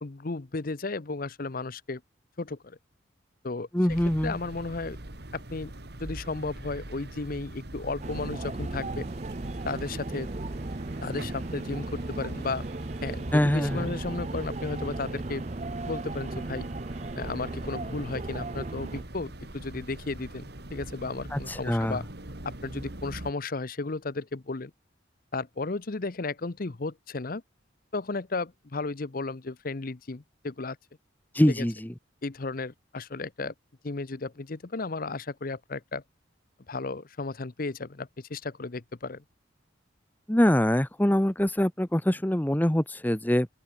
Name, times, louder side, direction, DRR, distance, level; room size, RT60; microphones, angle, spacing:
voice 1, 0.0-2.0 2.4-2.8 3.4-5.0 5.3-5.7 6.0-9.1 9.6-10.3 11.0-12.6 13.0-15.4 15.9-16.7 17.2-22.0 22.4-24.7 25.3-27.4 27.9-30.8 31.6-31.7 32.2-33.5 33.8-36.0 36.7-39.2, left 3 dB, 50° left, 0.8 m, -34 dB
voice 2, 3.7-4.4 13.3-13.9 21.3-22.0 31.3-31.9 40.3-43.5, equal, 10° left, 0.8 m, -24 dB
sound 1, 3.9-23.3, right 1 dB, 60° right, 2.4 m, -42 dB
sound 2, 8.0-19.0, right 2 dB, 35° right, 0.8 m, -36 dB
open air
head